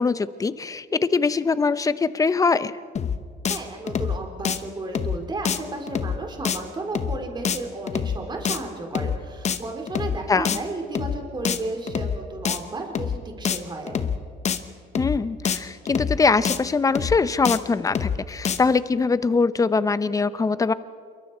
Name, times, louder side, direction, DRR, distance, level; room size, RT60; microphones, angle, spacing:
voice 1, 0.0-2.7 10.3-10.6 15.0-20.7, left 4 dB, 20° left, 15 dB, 0.7 m, -22 dB
sound 1, 3.0-3.2 3.5-3.6 3.9-4.2 4.4-4.6 5.0-5.2 5.5-5.6 5.9-6.2 6.5-6.6 7.0-7.2 7.4-7.6 7.9-8.2 8.5-8.6 9.0-9.2 9.5-9.6 9.9-10.2 10.5-10.6 11.0-11.2 11.4-11.6 11.9-12.2 12.5-12.6 13.0-13.2 13.4-13.6 13.9-14.2 14.5-14.6 15.0-15.2 15.5-15.6 15.9-16.2 16.4-16.6 17.0-17.2 17.5-17.6 17.9-18.2 18.4-18.6, left 7 dB, 40° left, 1.1 m, -25 dB
voice 2, 3.5-14.0, right 2 dB, 25° right, 3 dB, 3.0 m, -33 dB
27.5 x 23.0 x 4.4 m, 2.2 s
cardioid pair, 110°, 17 cm